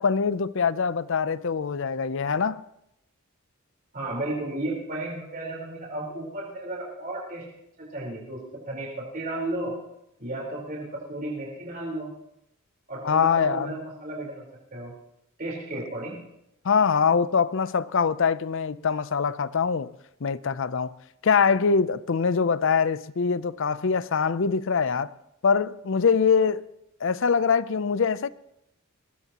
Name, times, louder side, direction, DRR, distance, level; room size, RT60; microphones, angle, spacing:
voice 1, 0.0-2.6 13.0-13.7 16.6-19.9 20.2-20.9 21.2-25.1 25.4-26.6 27.0-28.3, left 6 dB, 60° left, 0.5 m, -23 dB
voice 2, 3.9-7.4 7.8-9.7 10.2-12.1 12.9-14.4 14.7-14.9 15.4-16.2, right 2 dB, 40° right, 4.1 m, -33 dB
21.5 x 20.5 x 3.0 m
head